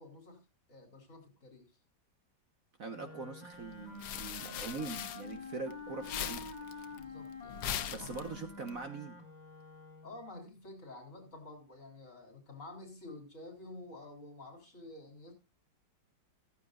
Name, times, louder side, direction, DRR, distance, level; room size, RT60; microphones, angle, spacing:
voice 1, 0.0-1.7 6.9-8.4 10.0-15.3, left 2 dB, 40° left, 5 dB, 3.7 m, -50 dB
voice 2, 2.8-6.4 6.7-6.9 7.9-9.2, right 4 dB, 50° right, 6 dB, 1.6 m, -42 dB
Wind instrument woodwind instrument, 2.9-10.3, left 4 dB, 20° left, 2.1 m, -48 dB
sound 1, 3.6-5.7 6.0-8.7, left 9 dB, 65° left, 1.3 m, -40 dB
14.5 x 14.0 x 2.5 m, 0.26 s
omnidirectional pair, 2.1 m